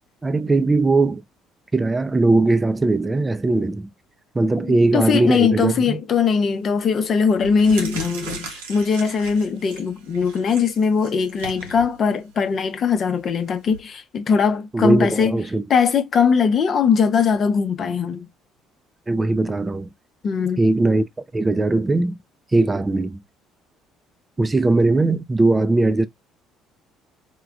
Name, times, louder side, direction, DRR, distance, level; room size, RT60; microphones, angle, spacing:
voice 1, 0.2-1.2 1.7-3.9 4.3-6.0 14.7-15.6 19.1-19.9 20.6-22.1 22.5-23.2 24.4-26.1, right 2 dB, 20° right, 0.4 m, -19 dB
voice 2, 4.7-15.3 15.7-18.3 20.2-20.6, left 6 dB, 45° left, 0.7 m, -20 dB
sound 1, 6.5-6.8 7.3-13.8, right 3 dB, 80° right, 0.9 m, -38 dB
4.6 x 2.2 x 2.4 m
hypercardioid pair, 55°, 0 cm